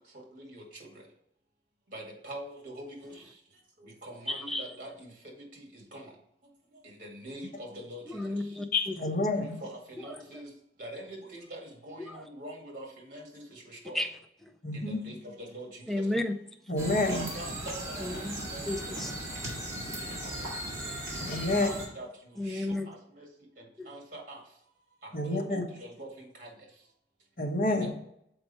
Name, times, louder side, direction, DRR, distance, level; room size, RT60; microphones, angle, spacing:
voice 1, 1.9-2.9 4.1-4.9 5.9-6.0 7.0-8.0 9.4-10.5 10.8-13.4 13.7-14.0 14.7-15.2 15.5-15.7 17.1-18.1 18.5-18.7 20.4-20.5 21.4-22.1 22.5-22.8 23.2-23.3 23.9-24.4 25.3-25.4 25.8-26.1 26.4-26.5 27.8-27.9, right 1 dB, 50° right, 0 dB, 2.1 m, -43 dB
voice 2, 4.3-4.6 8.1-8.9 13.9-14.1 15.9-16.3 18.0-18.4 18.7-19.1 22.4-22.9 23.8-23.9, left 1 dB, ahead, 5 dB, 0.4 m, -32 dB
voice 3, 8.7-9.4 14.6-15.0 16.7-17.3 21.3-21.7 25.1-25.6 27.4-27.9, left 2 dB, 50° left, 1 dB, 1.1 m, -28 dB
sound 1, 16.8-21.8, right 1 dB, 20° right, 2.2 m, -37 dB
6.7 x 4.4 x 4.2 m, 0.74 s
head